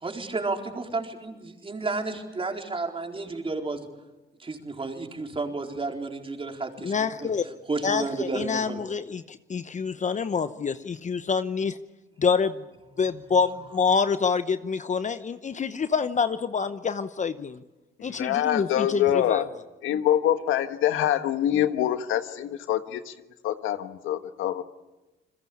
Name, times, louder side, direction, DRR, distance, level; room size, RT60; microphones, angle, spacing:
voice 1, 0.0-3.9 4.4-7.3 7.7-8.8, right 3 dB, 25° right, 3 dB, 4.3 m, -32 dB
voice 2, 6.8-7.5 7.8-11.8 12.2-12.6 13.0-17.6 18.0-19.4, left 5 dB, 35° left, 11 dB, 0.9 m, -26 dB
voice 3, 18.0-19.5 19.8-23.1 23.4-24.6, left 11 dB, 85° left, 9 dB, 1.5 m, -25 dB
29.5 x 21.5 x 8.6 m, 1.0 s
cardioid pair, 90°, 20 cm